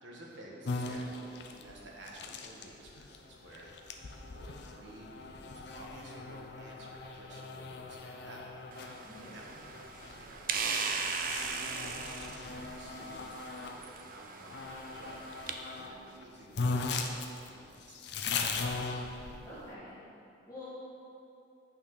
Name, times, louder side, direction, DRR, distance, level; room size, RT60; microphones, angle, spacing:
voice 1, 0.0-8.5 9.3-9.5 10.1-15.2 15.7-18.0, right 1 dB, 75° right, -2 dB, 1.3 m, -52 dB
sound 1, 0.6-13.8 14.5-15.9 16.2-16.3 16.5-19.7, left 3 dB, 60° left, 0.5 m, -39 dB
sound 2, 8.7-15.5, right 5 dB, 50° right, 0.5 m, -38 dB
voice 2, 9.0-9.5 19.4-19.9 20.5-20.6, left 1 dB, 20° left, -13 dB, 1.8 m, -47 dB
8.5 x 5.8 x 3.9 m, 2.7 s
head